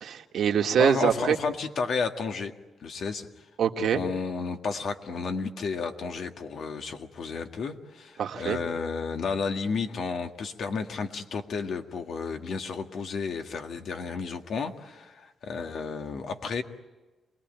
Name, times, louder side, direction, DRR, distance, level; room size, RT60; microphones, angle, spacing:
voice 1, 0.0-1.4 3.6-4.0 8.2-8.6, right 8 dB, 80° right, 4 dB, 1.7 m, -24 dB
voice 2, 0.8-2.5 2.8-3.3 3.9-16.6, left 5 dB, 70° left, 5 dB, 1.9 m, -32 dB
28.0 x 20.0 x 9.1 m, 1.2 s
cardioid pair, 110°, 0 cm